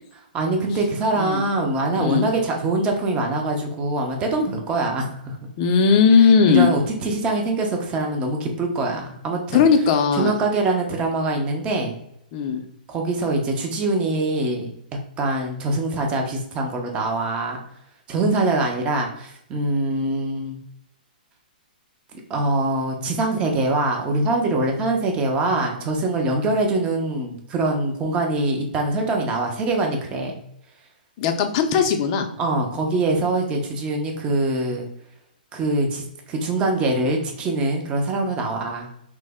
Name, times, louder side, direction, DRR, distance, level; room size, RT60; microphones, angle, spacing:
voice 1, 0.3-5.4 6.5-9.6 10.1-11.9 12.9-14.7 15.2-17.6 18.1-20.6 22.3-30.3 32.4-34.9 35.5-38.9, right 2 dB, 20° right, 2 dB, 0.6 m, -23 dB
voice 2, 5.6-6.7 9.5-10.4 12.3-12.6 31.2-32.3, left 6 dB, 35° left, 5 dB, 0.5 m, -17 dB
3.1 x 2.0 x 3.4 m, 0.75 s
hypercardioid pair, 145°, 5 cm